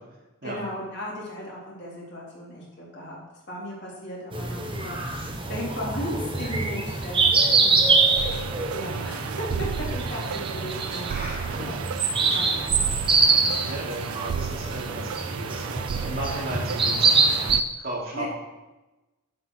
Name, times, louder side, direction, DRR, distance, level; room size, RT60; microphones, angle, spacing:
voice 1, 0.4-3.2 3.5-8.0 8.7-13.7 18.1-18.3, equal, 50° left, -4 dB, 3.7 m, -37 dB
sound 1, 4.3-17.6, right 4 dB, 25° right, 1.1 m, -24 dB
sound 2, 8.2-17.6, right 7 dB, 85° right, 0.3 m, -34 dB
voice 2, 11.1-11.7 13.7-17.1 17.8-18.3, right 1 dB, 45° right, -3 dB, 2.9 m, -34 dB
9.6 x 7.8 x 6.6 m, 1.1 s
head